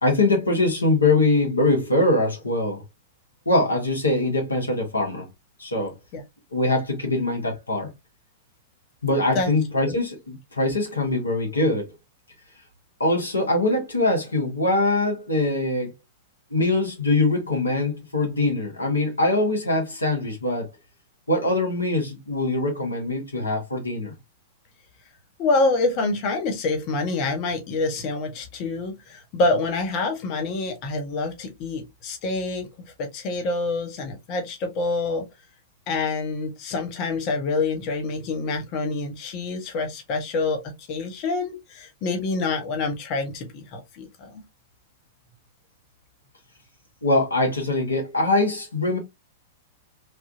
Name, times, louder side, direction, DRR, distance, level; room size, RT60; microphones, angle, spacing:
voice 1, 0.0-2.8 3.4-5.3 5.6-6.0 6.5-7.9 9.0-11.9 13.0-15.9 16.5-20.7 21.3-24.1 47.0-49.0, left 2 dB, 90° left, 1.1 m, -23 dB
voice 2, 25.4-35.3 35.9-40.6 40.9-44.4, left 3 dB, 45° left, 0.9 m, -26 dB
3.2 x 2.3 x 2.6 m
figure-of-eight pair, 100°, 0 cm